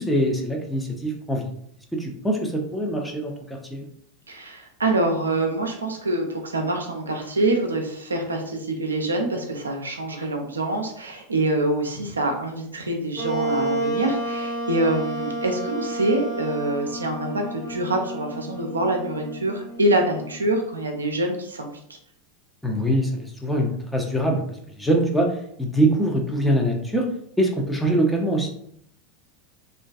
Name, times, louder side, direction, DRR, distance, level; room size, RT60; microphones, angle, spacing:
voice 1, 0.0-1.5 1.9-3.9 22.6-24.4 24.8-25.3 25.6-27.1 27.4-28.5, right 1 dB, 5° left, 0 dB, 0.5 m, -23 dB
voice 2, 4.3-22.0, right 2 dB, 80° right, 2 dB, 0.4 m, -25 dB
Wind instrument woodwind instrument, 13.1-20.6, right 1 dB, 35° left, 1.1 m, -31 dB
2.4 x 2.2 x 2.3 m, 0.69 s
figure-of-eight pair, 85°, 0 cm